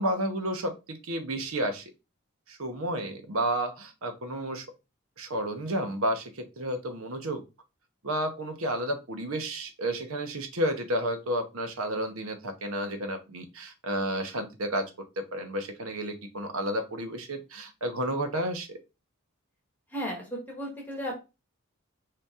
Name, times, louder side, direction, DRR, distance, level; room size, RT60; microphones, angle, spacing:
voice 1, 0.0-1.8 2.5-4.6 5.2-7.4 8.0-14.9 15.2-18.8, right 1 dB, 75° right, 6 dB, 0.9 m, -31 dB
voice 2, 19.9-21.1, equal, 10° left, -1 dB, 1.1 m, -35 dB
5.0 x 2.8 x 3.6 m, 0.27 s
head